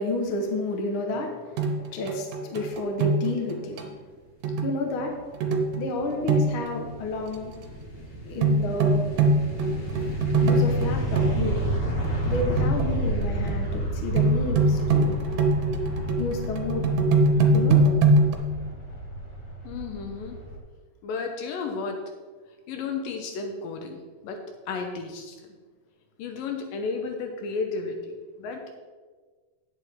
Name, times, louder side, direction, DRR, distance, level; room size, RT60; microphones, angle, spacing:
voice 1, 0.0-4.0 4.6-5.1 5.7-7.5 8.2-9.1 10.4-11.7 12.2-15.2 16.2-16.8 17.5-17.8, left 2 dB, 65° left, 1 dB, 1.3 m, -30 dB
sound 1, 1.6-3.5 3.8-3.9 4.4-4.8 5.4-5.9 6.3-6.7 8.4-11.5 12.0-12.9 13.2-13.8 14.2-18.3, right 2 dB, 70° right, 2.4 m, -23 dB
sound 2, 5.1-20.6, right 1 dB, 40° left, 1.7 m, -31 dB
voice 2, 19.6-20.4 21.0-22.0 22.7-24.4 24.7-25.3 26.2-28.8, left 4 dB, 80° left, 4 dB, 2.6 m, -33 dB
10.0 x 8.8 x 3.6 m, 1.4 s
omnidirectional pair, 4.1 m